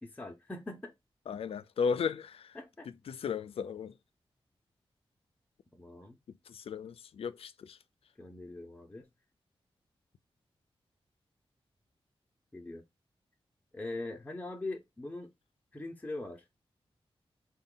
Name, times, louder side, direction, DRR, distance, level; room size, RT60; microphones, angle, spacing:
voice 1, 0.0-0.9 2.5-2.9 5.7-6.2 8.2-9.1 12.5-12.8 13.7-15.3 15.7-16.5, left 2 dB, 15° left, 0.6 m, -42 dB
voice 2, 1.3-2.6 3.1-3.9 6.5-7.8, left 6 dB, 90° left, 0.4 m, -35 dB
3.9 x 2.3 x 3.6 m
wide cardioid pair, 105°, 10 cm